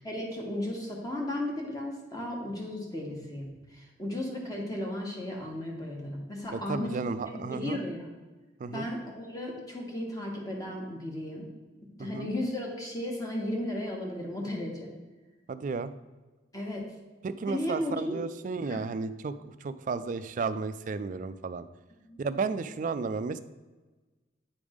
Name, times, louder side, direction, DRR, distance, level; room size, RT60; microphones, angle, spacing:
voice 1, 0.0-6.9 7.3-8.1 8.7-11.4 12.0-14.9 16.5-16.8 17.5-18.2 18.6-18.8 22.1-22.2, left 1 dB, 20° left, -1 dB, 1.3 m, -35 dB
voice 2, 6.5-7.8 8.6-8.9 12.0-12.3 15.5-15.9 17.2-21.6 22.2-23.4, right 4 dB, 40° right, 13 dB, 0.3 m, -33 dB
8.8 x 3.5 x 5.0 m, 1.2 s
head